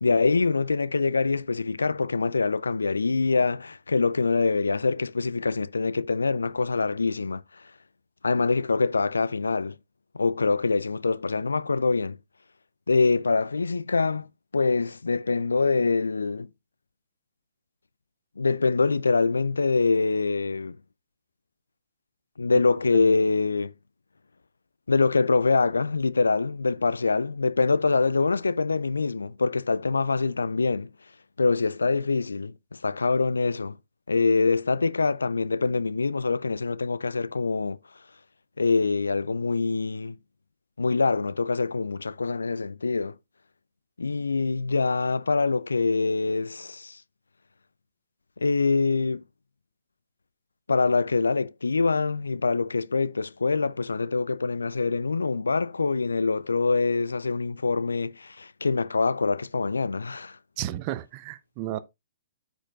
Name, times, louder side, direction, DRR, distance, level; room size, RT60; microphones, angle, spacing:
voice 1, 0.0-7.4 8.2-9.8 10.1-12.2 12.9-14.3 14.5-16.5 18.4-20.8 22.4-23.7 24.9-30.9 31.4-32.5 32.8-33.8 34.1-37.8 38.6-40.2 40.8-43.2 44.0-47.0 48.4-49.2 50.7-60.4, left 4 dB, 80° left, 0.4 m, -24 dB
voice 2, 60.6-61.8, right 14 dB, 35° right, 0.8 m, -33 dB
14.0 x 5.0 x 2.5 m
figure-of-eight pair, 120°, 0 cm